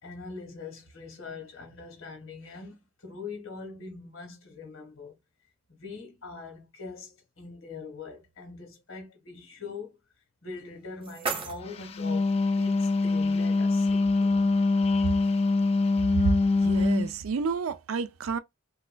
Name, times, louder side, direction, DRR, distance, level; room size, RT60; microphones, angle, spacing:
voice 1, 0.0-5.1 5.8-10.0 10.4-14.5, left 4 dB, 80° left, 1.7 m, -42 dB
sound 1, 10.5-12.5, right 4 dB, 25° right, 0.6 m, -37 dB
Wind instrument woodwind instrument, 11.8-17.1, left 3 dB, 30° left, 0.3 m, -24 dB
voice 2, 16.6-18.4, right 5 dB, 90° right, 0.4 m, -29 dB
3.3 x 2.9 x 2.2 m
head